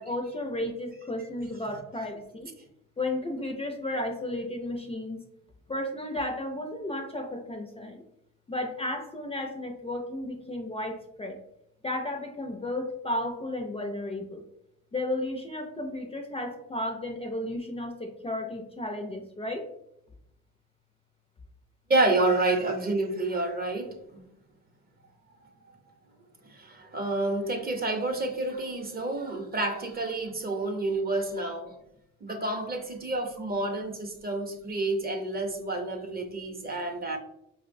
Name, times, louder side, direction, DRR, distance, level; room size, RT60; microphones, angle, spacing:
voice 1, 0.0-2.5 3.0-5.2 5.7-8.0 8.5-11.4 11.8-14.4 14.9-19.7 22.2-22.3, left 1 dB, 20° left, 3 dB, 0.4 m, -33 dB
voice 2, 21.9-24.0 26.5-31.7 32.2-37.2, right 2 dB, 30° right, 4 dB, 0.6 m, -29 dB
5.0 x 2.1 x 2.5 m, 0.80 s
cardioid pair, 90°, 30 cm